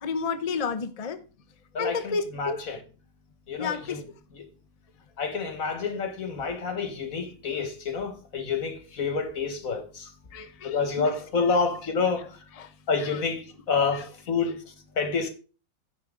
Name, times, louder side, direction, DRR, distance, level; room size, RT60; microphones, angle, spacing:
voice 1, 0.0-1.2 1.8-2.6 3.6-4.0 10.3-11.1 12.5-12.7 13.0-13.2 13.9-14.1 14.4-14.5, left 5 dB, 75° left, 0.3 m, -31 dB
voice 2, 1.7-2.8 3.5-4.0 5.2-10.1 10.6-12.4 12.9-14.6 15.0-15.3, left 5 dB, 45° left, 1.9 m, -28 dB
10.0 x 8.2 x 3.8 m
omnidirectional pair, 2.1 m